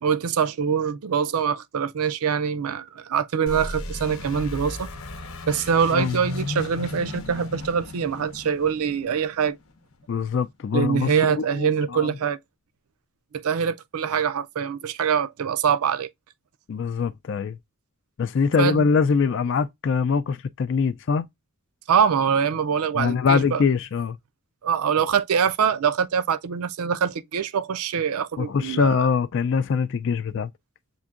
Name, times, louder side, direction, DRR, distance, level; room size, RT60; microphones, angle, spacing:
voice 1, 0.0-4.9 5.5-9.6 10.7-12.4 13.4-16.1 18.6-18.9 21.9-23.6 24.6-29.1, right 7 dB, 80° right, 0.4 m, -24 dB
sound 1, 3.5-10.0, left 2 dB, 75° left, 0.9 m, -35 dB
voice 2, 10.1-12.1 16.7-17.6 18.2-21.3 22.9-24.2 28.4-30.5, left 5 dB, 55° left, 0.3 m, -23 dB
7.0 x 2.6 x 2.4 m
head